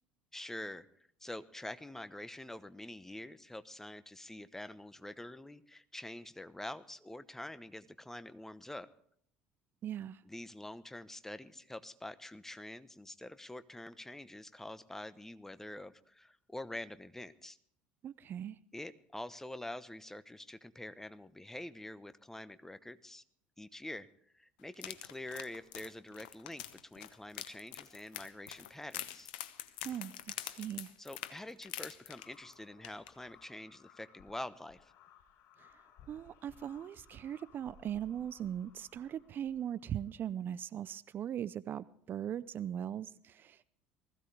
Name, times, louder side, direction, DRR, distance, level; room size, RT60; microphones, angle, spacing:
voice 1, 0.3-8.9 10.2-17.6 18.7-23.2 23.6-24.1 24.3-29.3 31.0-34.9, left 1 dB, 10° left, 1.0 m, -46 dB
voice 2, 9.8-10.2 18.0-18.6 29.8-30.9 35.6-35.7 36.1-43.6, right 10 dB, 45° right, 0.5 m, -40 dB
sound 1, 24.7-32.5 32.8-33.1 33.4-33.5, left 13 dB, 70° left, 1.0 m, -45 dB
sound 2, 32.1-40.1, left 7 dB, 55° left, 3.6 m, -62 dB
20.0 x 15.0 x 3.4 m
hypercardioid pair, 65°, 5 cm